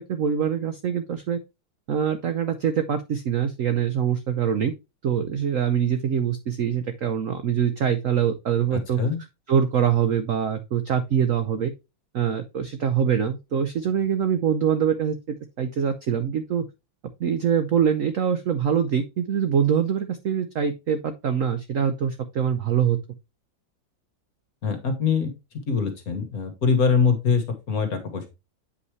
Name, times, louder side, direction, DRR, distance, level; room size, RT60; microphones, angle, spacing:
voice 1, 0.1-1.4 1.9-4.7 5.0-9.0 9.5-11.7 12.1-16.6 17.2-23.0, right 8 dB, 65° right, 9 dB, 0.8 m, -24 dB
voice 2, 8.7-9.2 24.6-25.3 25.7-28.3, left 5 dB, 50° left, 7 dB, 1.7 m, -23 dB
8.3 x 5.4 x 3.1 m, 0.25 s
omnidirectional pair, 2.1 m